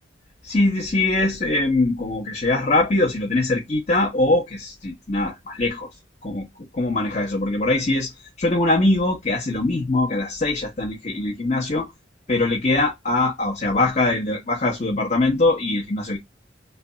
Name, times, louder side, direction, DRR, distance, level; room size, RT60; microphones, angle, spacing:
voice 1, 0.4-5.9 6.2-6.5 6.7-8.1 8.4-11.9 12.3-16.2, left 2 dB, 35° left, 0.8 m, -22 dB
3.2 x 2.3 x 3.8 m
head